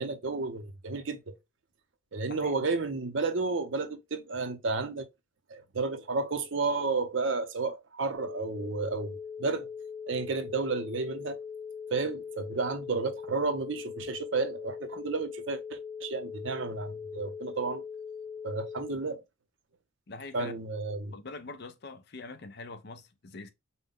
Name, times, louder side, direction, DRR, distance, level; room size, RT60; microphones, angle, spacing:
voice 1, 0.0-1.3 2.1-5.1 5.5-9.7 10.1-11.4 11.9-17.8 18.4-19.2 20.3-21.1, right 3 dB, 60° right, 0.7 m, -32 dB
sound 1, 8.1-18.9, left 6 dB, 80° left, 1.9 m, -41 dB
voice 2, 20.1-20.5 21.1-23.5, left 3 dB, 50° left, 0.6 m, -44 dB
5.5 x 2.2 x 3.5 m
head